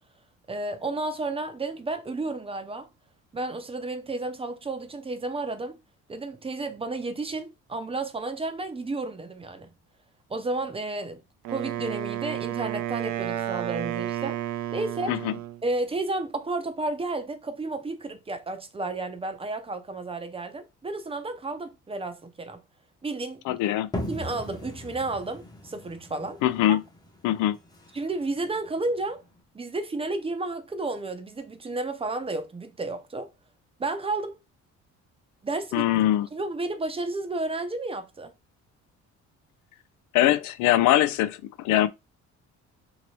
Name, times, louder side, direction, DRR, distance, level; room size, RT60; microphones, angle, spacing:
voice 1, 0.5-2.9 3.3-5.8 6.1-9.7 10.3-11.2 11.5-14.4 14.7-15.2 15.6-22.6 23.0-23.6 24.1-26.4 26.7-26.8 27.9-29.2 29.5-33.3 33.8-34.4 35.4-35.9 36.3-38.3, right 2 dB, 20° right, 0.6 m, -32 dB
Wind instrument woodwind instrument, 11.5-15.6, right 12 dB, 70° right, 0.5 m, -31 dB
voice 2, 23.5-23.9 26.4-26.8 27.2-27.6 35.7-36.3 40.1-41.9, left 13 dB, 80° left, 0.5 m, -22 dB
sound 1, 23.9-29.4, left 1 dB, 15° left, 0.8 m, -39 dB
2.9 x 2.8 x 3.0 m
cardioid pair, 110°, 30 cm